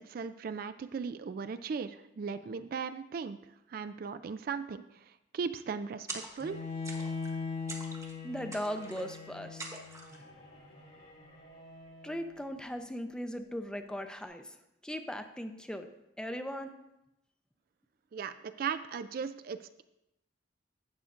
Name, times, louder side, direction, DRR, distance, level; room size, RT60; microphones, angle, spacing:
voice 1, 0.0-3.4 3.7-4.8 5.3-6.6 18.1-19.8, right 5 dB, 50° right, 10 dB, 0.3 m, -37 dB
sound 1, 6.1-6.6 6.8-7.4 7.7-8.2 8.5-9.2 9.6-10.2, right 2 dB, 15° right, 1.1 m, -44 dB
Bowed string instrument, 6.4-12.4, left 4 dB, 50° left, 2.7 m, -41 dB
voice 2, 8.2-9.6 12.0-14.6 14.8-15.9 16.2-16.7, equal, 5° left, 7 dB, 0.5 m, -38 dB
12.0 x 8.1 x 2.5 m, 0.88 s
head